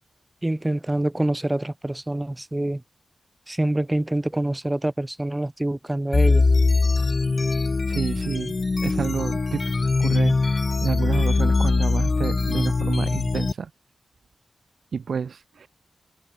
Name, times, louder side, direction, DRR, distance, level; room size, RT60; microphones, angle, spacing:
voice 1, 0.4-2.8 3.5-6.5, right 1 dB, 15° right, 6.6 m, -26 dB
sound 1, 6.1-13.5, left 3 dB, 45° left, 4.4 m, -22 dB
voice 2, 7.9-8.5 8.8-9.7 10.0-13.7 14.9-15.7, right 6 dB, 75° right, 4.3 m, -29 dB
cardioid pair, 55°, 0 cm